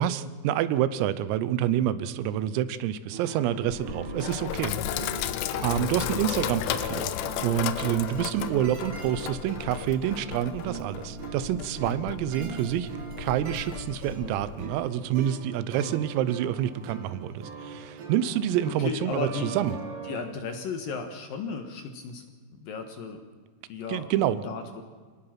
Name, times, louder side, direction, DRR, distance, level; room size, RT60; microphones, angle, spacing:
voice 1, 0.0-4.7 5.2-7.1 7.4-12.9 13.2-19.8 23.9-24.4, right 11 dB, 90° right, 14 dB, 3.6 m, -28 dB
sound 1, 3.1-20.2, right 5 dB, 55° right, 4.2 m, -41 dB
Sink (filling or washing), 3.7-14.7, left 11 dB, 90° left, 2.4 m, -34 dB
voice 2, 18.7-19.5 20.0-22.2 22.5-23.2 23.7-24.8, left 5 dB, 65° left, 6 dB, 2.3 m, -35 dB
27.5 x 19.0 x 5.9 m, 1.5 s
omnidirectional pair, 5.9 m